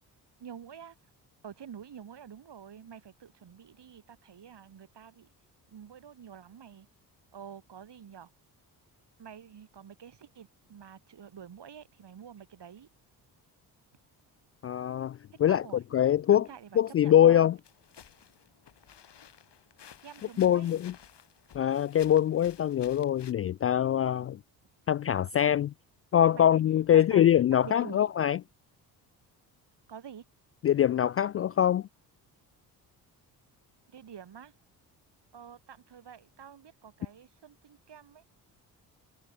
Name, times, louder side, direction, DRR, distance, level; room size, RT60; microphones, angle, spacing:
voice 1, 0.4-0.9 1.4-5.3 5.7-6.9 7.3-8.3 9.2-12.9 15.5-15.8 16.3-17.4 20.0-20.8 26.1-26.6 26.9-27.3 27.6-28.1 29.9-30.2 31.6-31.7 33.9-34.5 35.3-38.2, right 8 dB, 55° right, 8.0 m, -48 dB
voice 2, 14.6-15.6 15.9-16.5 16.8-17.5 20.4-20.9 21.5-24.4 24.9-25.7 26.1-28.4 30.6-31.9, left 10 dB, 30° left, 0.3 m, -23 dB
sound 1, 17.6-23.3, left 8 dB, 55° left, 5.8 m, -54 dB
hypercardioid pair, 45°, 49 cm